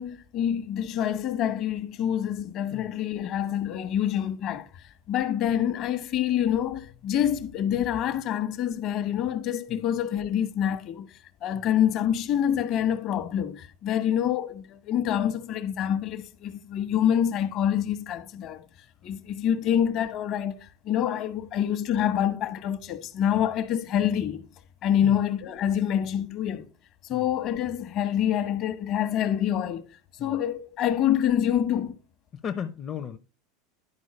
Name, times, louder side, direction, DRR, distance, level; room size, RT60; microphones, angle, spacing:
voice 1, 0.0-11.1 11.4-18.6 19.0-24.5 24.8-26.7 27.1-29.9 30.2-32.0, left 10 dB, 50° left, 1.1 m, -26 dB
voice 2, 32.3-33.2, left 8 dB, 35° left, 0.6 m, -36 dB
11.0 x 4.7 x 4.2 m
supercardioid pair, 115°, 0 cm